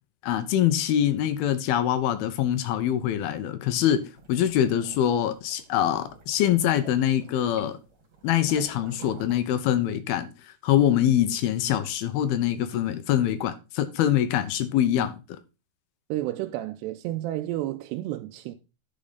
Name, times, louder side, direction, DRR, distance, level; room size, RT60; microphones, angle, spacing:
voice 1, 0.2-7.8 8.2-10.3 10.6-15.4, left 11 dB, 75° left, 2.5 m, -24 dB
sound 1, 3.9-9.4, right 4 dB, 40° right, 3.2 m, -49 dB
voice 2, 16.1-18.6, right 15 dB, 90° right, 2.8 m, -31 dB
10.5 x 5.4 x 5.1 m
omnidirectional pair, 4.9 m